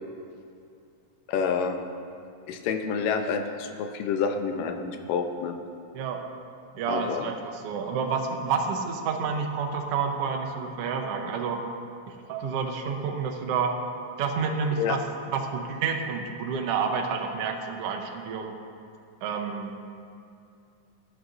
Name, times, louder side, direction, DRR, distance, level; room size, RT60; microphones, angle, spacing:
voice 1, 1.3-1.8 2.5-5.6 6.9-7.3 14.8-15.0, left 6 dB, 90° left, 6 dB, 2.4 m, -28 dB
voice 2, 6.7-11.6 12.1-13.8 14.2-18.6 19.2-19.9, right 5 dB, 80° right, 3 dB, 1.3 m, -29 dB
16.5 x 11.0 x 2.6 m, 2.5 s
omnidirectional pair, 3.7 m